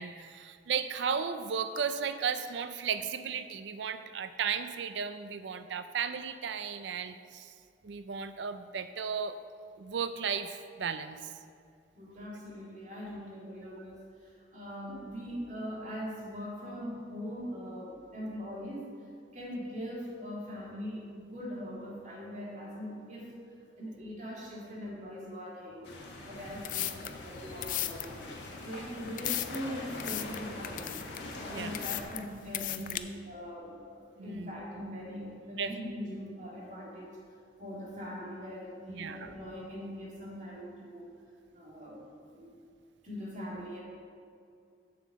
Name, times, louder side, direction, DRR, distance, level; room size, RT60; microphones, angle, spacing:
voice 1, 0.0-7.5 7.8-9.4 9.8-11.3 31.5-31.7 34.2-34.5 35.6-35.7 38.9-39.3, right 6 dB, 80° right, 11 dB, 0.4 m, -35 dB
voice 2, 12.0-18.9 19.3-23.4 23.8-25.9 26.2-37.1 37.6-41.1 41.5-42.0 42.3-42.5 43.0-43.8, equal, 40° right, -4 dB, 2.2 m, -41 dB
sound 1, 25.8-32.0, left 2 dB, 85° left, 1.6 m, -43 dB
sound 2, 26.4-33.0, left 13 dB, 45° left, 0.4 m, -37 dB
7.6 x 5.7 x 7.2 m, 2.4 s
head